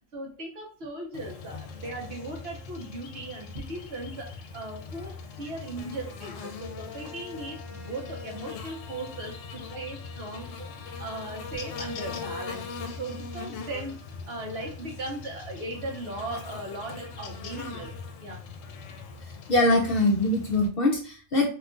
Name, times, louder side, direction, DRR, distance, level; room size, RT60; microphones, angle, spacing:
voice 1, 0.1-14.0 14.3-17.9 18.2-18.4 19.0-19.1, right 2 dB, 60° right, 0 dB, 1.1 m, -38 dB
Buzz, 1.1-20.7, left 5 dB, 80° left, 0.9 m, -40 dB
voice 2, 19.5-21.5, left 2 dB, 55° left, 0 dB, 0.7 m, -23 dB
2.9 x 2.3 x 3.7 m, 0.38 s
omnidirectional pair, 1.3 m